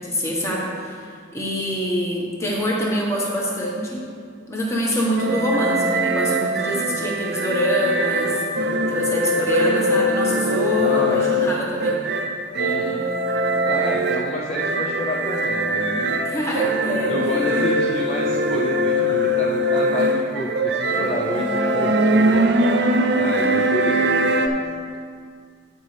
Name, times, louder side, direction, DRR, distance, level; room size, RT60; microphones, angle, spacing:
voice 1, 0.0-4.0 4.5-12.0 16.2-17.6, equal, 15° left, -4 dB, 1.3 m, -25 dB
sound 1, 5.2-24.5, right 1 dB, 60° right, 0.6 m, -22 dB
voice 2, 10.8-11.2 12.5-13.1 13.6-16.3 17.1-22.8 23.2-24.0, left 1 dB, 30° left, -3 dB, 0.5 m, -29 dB
13.5 x 5.3 x 3.3 m, 2.2 s
head